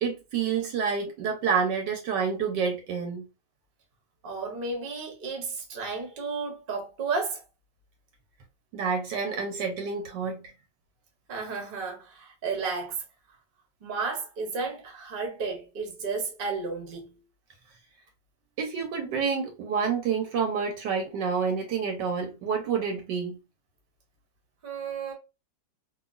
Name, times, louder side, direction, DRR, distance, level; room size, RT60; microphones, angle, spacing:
voice 1, 0.0-3.2 8.7-10.4 18.6-23.4, right 6 dB, 75° right, 1.2 m, -28 dB
voice 2, 4.2-7.4 11.3-13.0 13.8-17.2 24.6-25.1, right 4 dB, 45° right, 0.8 m, -33 dB
2.9 x 2.5 x 2.3 m
omnidirectional pair, 2.0 m